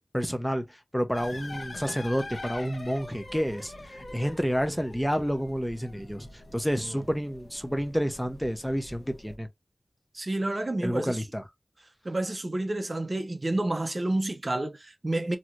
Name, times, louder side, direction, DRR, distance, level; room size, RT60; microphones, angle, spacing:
voice 1, 0.0-9.5 10.8-11.4, equal, ahead, 0.7 m, -30 dB
sound 1, 1.1-9.3, left 2 dB, 75° left, 1.1 m, -44 dB
voice 2, 10.1-11.2 12.0-15.4, right 1 dB, 40° right, 0.6 m, -29 dB
3.1 x 2.8 x 2.4 m
wide cardioid pair, 70°, 0 cm